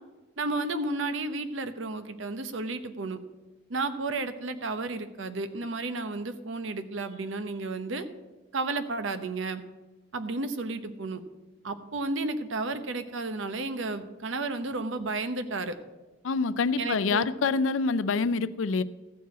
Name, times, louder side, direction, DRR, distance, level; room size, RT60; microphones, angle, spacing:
voice 1, 0.4-3.2 3.7-8.0 8.5-9.6 10.1-11.2 11.6-15.7 16.8-17.3, right 3 dB, 70° right, 10 dB, 0.8 m, -32 dB
voice 2, 16.2-18.8, left 4 dB, 75° left, 15 dB, 0.5 m, -26 dB
14.0 x 4.7 x 8.2 m, 1.2 s
head